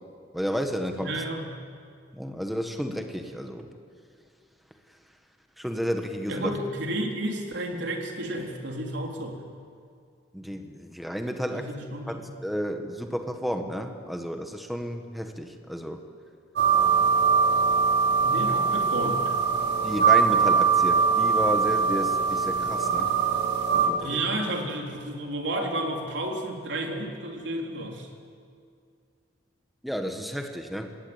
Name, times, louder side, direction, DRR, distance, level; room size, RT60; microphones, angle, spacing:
voice 1, 0.3-1.1 2.1-3.7 5.6-6.5 10.3-11.7 12.1-16.0 19.8-23.1 23.7-24.2 29.8-30.9, equal, ahead, 4 dB, 1.6 m, -32 dB
voice 2, 1.0-1.5 6.3-9.4 11.5-12.2 18.2-19.3 24.0-28.1, right 1 dB, 80° right, 2 dB, 3.8 m, -31 dB
sound 1, 16.6-23.9, right 6 dB, 60° right, 3.9 m, -22 dB
27.0 x 21.0 x 8.9 m, 2.3 s
head